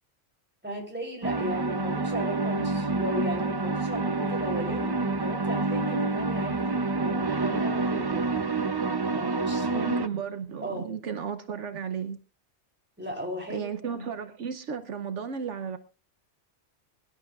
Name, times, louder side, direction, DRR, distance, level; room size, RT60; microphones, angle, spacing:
voice 1, 0.6-8.3 9.1-9.9 10.6-11.0 13.0-14.0, equal, 10° right, 3.6 m, -36 dB
sound 1, 1.2-10.1, right 3 dB, 25° right, 0.5 m, -28 dB
voice 2, 9.7-12.2 13.5-15.8, right 7 dB, 75° right, 1.2 m, -34 dB
23.0 x 11.5 x 2.4 m
omnidirectional pair, 1.3 m